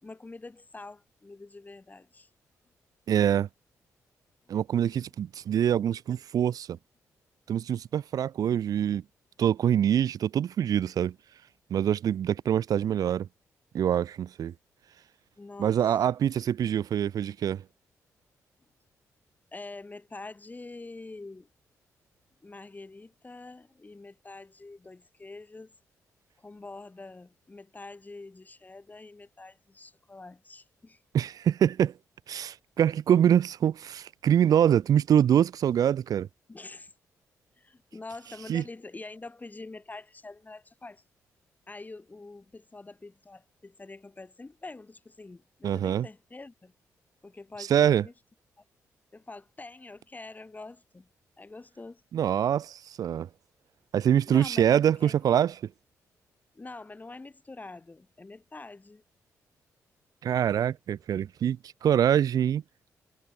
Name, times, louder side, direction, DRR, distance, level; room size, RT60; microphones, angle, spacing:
voice 1, 0.0-2.3 15.4-16.0 19.5-21.5 22.4-25.7 26.4-31.0 36.5-36.9 37.6-41.0 41.7-46.7 47.2-48.1 49.1-51.1 51.4-52.0 54.3-55.2 56.6-59.0, left 3 dB, 25° left, 1.8 m, -45 dB
voice 2, 3.1-3.5 4.5-6.8 7.5-9.0 9.4-11.1 11.7-13.3 13.7-14.5 15.6-17.6 31.1-31.9 32.3-36.3 38.5-38.6 45.6-46.1 47.7-48.1 52.1-53.3 53.9-55.5 60.2-62.6, right 9 dB, 65° right, 0.6 m, -25 dB
supercardioid pair, 60°, 7 cm